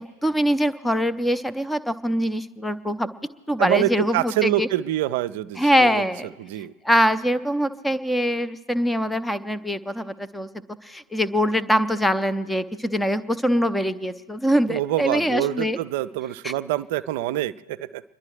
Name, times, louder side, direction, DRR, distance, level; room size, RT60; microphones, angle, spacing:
voice 1, 0.0-3.1 3.5-4.7 5.6-6.3 6.8-10.5 10.8-15.8 16.4-16.5, equal, 5° left, 12 dB, 0.6 m, -23 dB
voice 2, 3.6-6.0 6.4-6.7 14.7-18.0, right 14 dB, 50° right, 14 dB, 0.4 m, -26 dB
30.0 x 11.5 x 3.2 m, 1.3 s
figure-of-eight pair, 90°, 0 cm